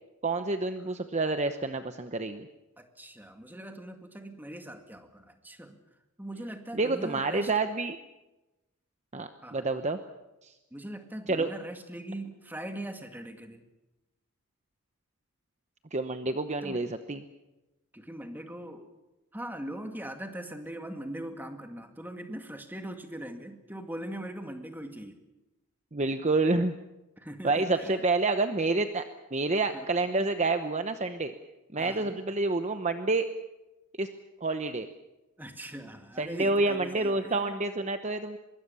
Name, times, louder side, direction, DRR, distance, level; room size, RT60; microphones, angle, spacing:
voice 1, 0.2-2.5 6.7-8.0 9.1-10.0 10.4-10.5 11.3-11.5 15.9-17.2 25.9-26.7 27.4-29.0 29.3-31.3 31.7-33.3 34.0-34.1 34.4-34.9 36.2-38.4, right 3 dB, 30° right, 8 dB, 0.9 m, -28 dB
voice 2, 2.8-5.8 6.2-7.5 9.4-9.7 10.7-13.6 16.6-16.8 17.9-18.9 19.3-25.2 27.2-28.0 29.7-30.2 31.8-32.2 35.4-37.5, right 1 dB, 10° right, 5 dB, 2.2 m, -41 dB
24.0 x 22.5 x 7.0 m, 1.0 s
head